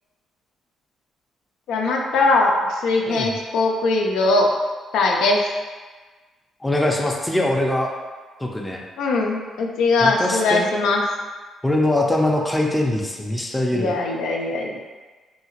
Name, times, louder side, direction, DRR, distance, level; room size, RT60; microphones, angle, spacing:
voice 1, 1.7-4.5 4.9-5.4 9.0-11.0 13.7-14.8, left 3 dB, 85° left, 0 dB, 0.4 m, -20 dB
voice 2, 6.6-7.9 8.4-8.8 10.0-10.7 11.6-13.9, left 1 dB, 10° left, 0 dB, 0.4 m, -22 dB
2.8 x 2.8 x 2.8 m, 1.4 s
cardioid pair, 90°, 0 cm